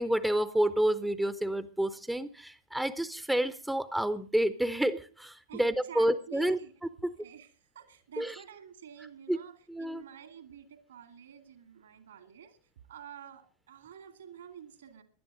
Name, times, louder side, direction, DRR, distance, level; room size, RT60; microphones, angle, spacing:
voice 1, 0.0-6.6 7.0-7.1 8.2-8.3 9.3-9.4 9.7-10.0, right 1 dB, 5° right, 15 dB, 0.7 m, -29 dB
voice 2, 5.5-6.7 7.2-12.6 12.9-15.0, right 8 dB, 65° right, 9 dB, 2.3 m, -49 dB
16.5 x 11.5 x 5.1 m, 0.39 s
figure-of-eight pair, 90°, 0 cm